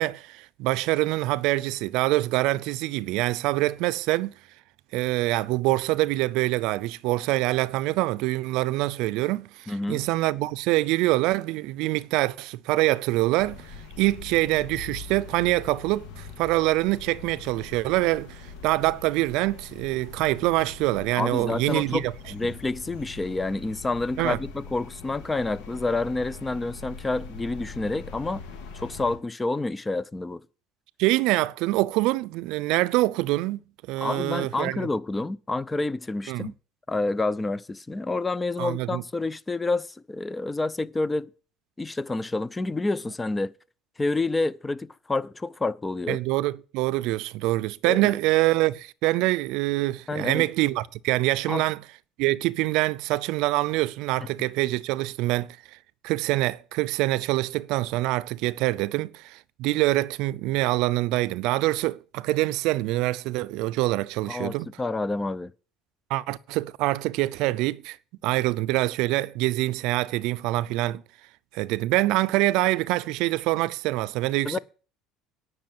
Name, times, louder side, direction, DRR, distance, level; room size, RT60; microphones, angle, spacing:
voice 1, 0.0-4.3 4.9-22.1 24.2-24.4 31.0-33.6 33.9-34.9 36.3-36.5 38.6-39.0 46.1-51.8 52.2-55.5 56.0-64.7 66.1-68.0 68.2-71.0 71.5-74.6, right 18 dB, 75° right, 0.5 m, -25 dB
voice 2, 9.7-10.0 21.2-22.0 22.3-28.4 28.7-30.4 34.0-36.5 36.9-41.3 41.8-43.5 44.0-46.2 47.8-48.1 50.1-50.4 51.5-51.6 64.3-65.5 74.4-74.6, left 2 dB, 15° left, 0.5 m, -28 dB
sound 1, 13.4-29.2, left 5 dB, 80° left, 2.1 m, -42 dB
10.5 x 6.1 x 7.3 m
cardioid pair, 120°, 0 cm